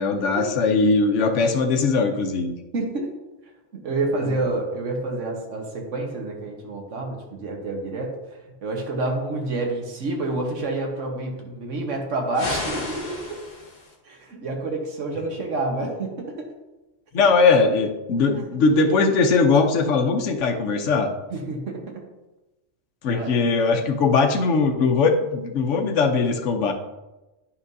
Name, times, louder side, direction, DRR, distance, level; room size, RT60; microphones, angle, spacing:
voice 1, 0.0-2.6 4.2-4.4 17.1-21.1 23.0-26.7, left 4 dB, 80° left, 4 dB, 1.1 m, -20 dB
voice 2, 2.7-3.1 3.7-8.1 8.6-13.2 14.0-16.5 21.3-22.0 23.0-23.3, right 2 dB, 80° right, 1 dB, 1.5 m, -28 dB
sound 1, 12.3-14.0, left 2 dB, 40° left, 1.3 m, -32 dB
9.9 x 5.6 x 2.7 m, 1.0 s
omnidirectional pair, 1.3 m